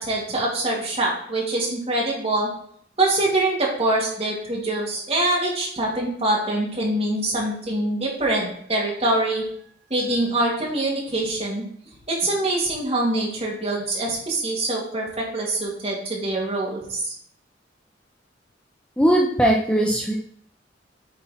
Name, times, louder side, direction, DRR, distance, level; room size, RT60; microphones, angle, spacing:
voice 1, 0.0-2.5 3.0-9.4 9.9-11.6 12.1-17.1, right 2 dB, 35° right, -3 dB, 2.5 m, -24 dB
voice 2, 19.0-20.1, right 1 dB, 5° left, -2 dB, 0.8 m, -19 dB
8.5 x 4.5 x 4.3 m, 0.63 s
head